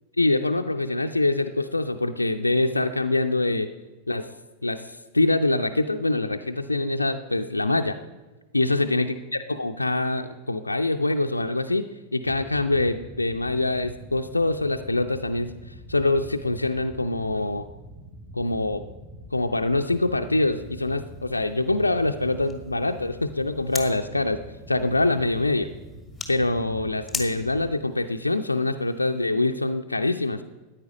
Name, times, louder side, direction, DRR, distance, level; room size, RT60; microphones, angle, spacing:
voice 1, 0.2-3.7 4.1-4.3 4.6-8.0 8.5-17.6 18.3-18.8 19.3-24.4 24.7-25.7 26.3-30.4, left 2 dB, 80° left, 5 dB, 0.5 m, -24 dB
sound 1, 12.2-27.7, equal, 15° right, 5.0 m, -44 dB
sound 2, 19.9-29.3, left 4 dB, 10° left, 1.7 m, -42 dB
14.0 x 9.6 x 5.2 m, 1.2 s
figure-of-eight pair, 90°, 0 cm